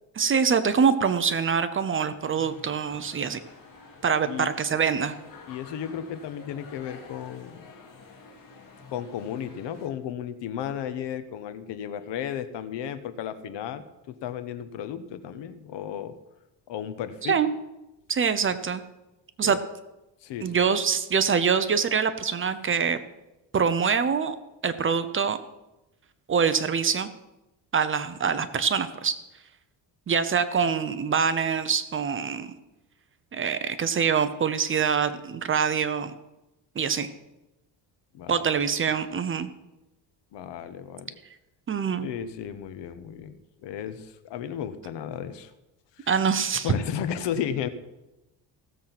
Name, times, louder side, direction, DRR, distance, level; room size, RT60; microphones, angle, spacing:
voice 1, 0.2-3.4 4.0-5.2 17.2-17.5 18.1-18.8 19.4-19.6 20.4-23.0 23.5-24.4 24.6-25.4 26.3-27.1 27.7-29.2 30.1-32.5 33.3-36.1 36.8-37.1 38.3-39.5 41.7-42.1 46.1-46.7, right 6 dB, 30° right, 11 dB, 0.7 m, -24 dB
sound 1, 2.2-9.9, left 4 dB, 50° left, 2.7 m, -49 dB
voice 2, 5.5-7.7 8.9-16.2 16.7-17.5 19.4-19.6 20.2-20.6 38.1-38.4 40.3-41.2 42.0-45.5 46.0-46.1 46.6-47.7, left 9 dB, 75° left, 11 dB, 1.2 m, -34 dB
16.0 x 7.5 x 5.9 m, 0.97 s
cardioid pair, 150°, 43 cm